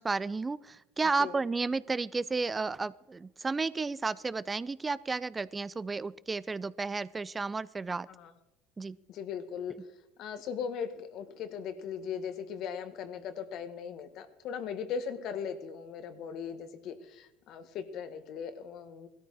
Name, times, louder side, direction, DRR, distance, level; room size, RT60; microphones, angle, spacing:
voice 1, 0.0-8.1 8.8-9.0, right 4 dB, 20° right, 19 dB, 0.4 m, -32 dB
voice 2, 9.1-9.7 10.2-19.1, left 7 dB, 60° left, 11 dB, 1.5 m, -38 dB
16.5 x 13.5 x 4.8 m, 0.91 s
hypercardioid pair, 85°, 0 cm